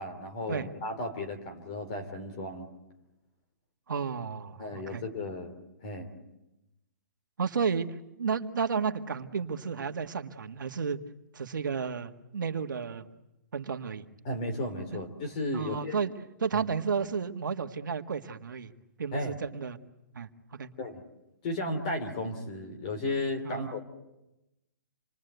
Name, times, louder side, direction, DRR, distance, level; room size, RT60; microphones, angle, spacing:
voice 1, 0.0-2.7 4.6-5.5 5.8-6.1 14.2-15.9 16.5-16.6 19.1-19.4 20.8-21.0 21.4-23.8, left 1 dB, 25° left, 7 dB, 2.9 m, -34 dB
voice 2, 3.9-5.0 7.4-11.0 11.3-13.1 13.5-14.1 14.9-15.0 15.5-16.1 16.4-18.7 19.0-19.8 20.1-20.7 23.4-23.8, right 6 dB, 80° right, 6 dB, 1.8 m, -32 dB
27.5 x 22.5 x 8.1 m, 0.95 s
hypercardioid pair, 180°, 10 cm